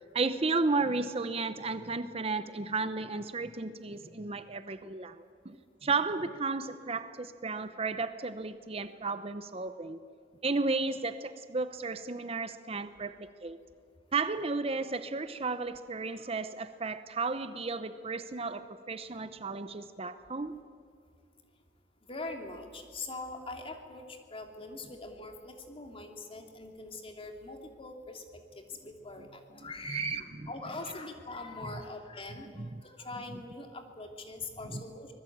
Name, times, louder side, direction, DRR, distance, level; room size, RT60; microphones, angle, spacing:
voice 1, 0.1-5.6 5.8-10.0 10.4-13.6 14.1-20.6 29.9-30.2 31.6-31.7 32.6-32.8 34.7-34.8, right 3 dB, 35° right, 12 dB, 0.8 m, -33 dB
voice 2, 22.1-28.2 28.6-35.1, left 2 dB, 30° left, 4 dB, 2.7 m, -43 dB
25.5 x 20.0 x 8.8 m, 2.2 s
head